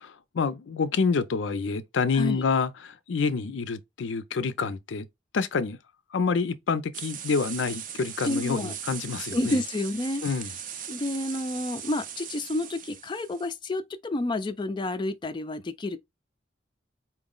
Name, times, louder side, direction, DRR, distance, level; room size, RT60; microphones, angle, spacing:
voice 1, 0.0-5.1 5.3-5.8 6.1-9.6 10.2-10.5, left 5 dB, 85° left, 0.5 m, -27 dB
sound 1, 6.9-13.5, right 8 dB, 45° right, 0.5 m, -39 dB
voice 2, 8.2-8.7 9.3-10.2 10.9-16.0, left 2 dB, 25° left, 0.4 m, -30 dB
4.4 x 2.0 x 3.7 m
head